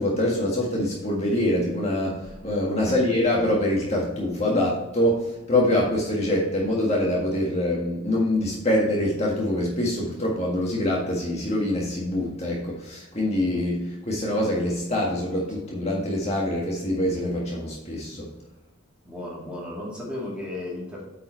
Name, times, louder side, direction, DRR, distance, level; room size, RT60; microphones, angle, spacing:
voice 1, 0.0-18.3, left 1 dB, 30° left, -3 dB, 1.6 m, -25 dB
voice 2, 19.0-21.0, left 1 dB, 5° right, -5 dB, 2.5 m, -34 dB
8.8 x 4.8 x 4.4 m, 1.0 s
head